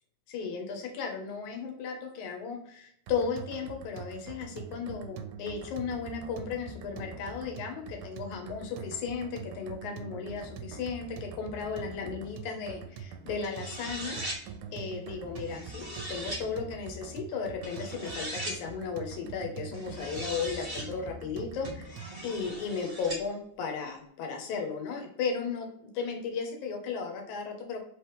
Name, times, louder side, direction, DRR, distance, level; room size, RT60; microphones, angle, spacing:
voice 1, 0.3-14.2 14.7-27.8, left 5 dB, 80° left, 3 dB, 2.3 m, -35 dB
sound 1, 3.1-22.3, right 5 dB, 80° right, 1.8 m, -44 dB
sound 2, 13.4-14.4 15.3-16.4 17.6-18.6 19.7-20.9 21.6-23.2, right 1 dB, 55° right, 0.6 m, -39 dB
5.2 x 3.1 x 3.3 m, 0.69 s
omnidirectional pair, 3.4 m